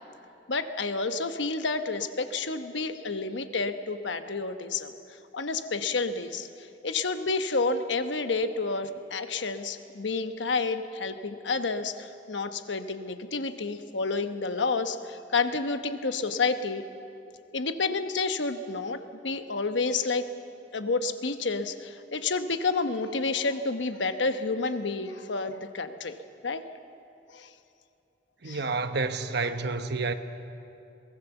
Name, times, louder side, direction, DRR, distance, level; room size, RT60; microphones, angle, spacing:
voice 1, 0.5-4.9 5.3-6.5 6.8-16.9 17.5-20.2 20.7-26.2 26.4-26.6 27.3-27.5 28.4-28.6, left 3 dB, 80° left, 1.1 m, -30 dB
voice 2, 28.4-30.1, right 3 dB, 65° right, 1.1 m, -29 dB
22.5 x 19.0 x 7.1 m
head